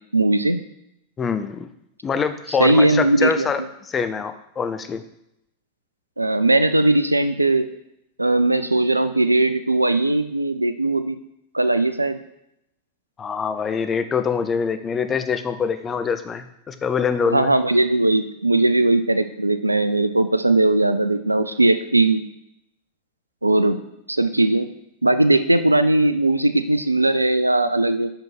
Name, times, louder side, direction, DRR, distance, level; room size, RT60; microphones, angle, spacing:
voice 1, 0.1-0.6 2.6-3.5 6.2-7.7 8.2-11.2 11.5-12.2 17.3-22.2 23.4-23.8 24.1-24.7 25.0-28.1, right 2 dB, 85° right, 11 dB, 0.4 m, -19 dB
voice 2, 1.2-1.7 2.0-5.0 13.2-17.5, left 6 dB, 20° left, 10 dB, 0.5 m, -24 dB
5.9 x 5.2 x 4.4 m, 0.81 s
figure-of-eight pair, 90°, 0 cm